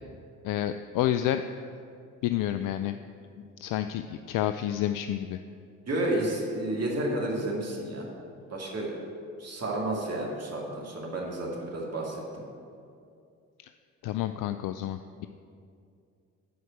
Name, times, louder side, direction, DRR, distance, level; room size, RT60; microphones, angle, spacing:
voice 1, 0.4-1.4 2.2-3.0 3.6-5.4 14.0-15.3, left 12 dB, 55° left, 9 dB, 0.4 m, -29 dB
voice 2, 5.9-8.1 8.5-8.9 9.4-12.4, right 1 dB, 40° right, -3 dB, 2.2 m, -31 dB
9.3 x 4.7 x 7.5 m, 2.4 s
hypercardioid pair, 45°, 40 cm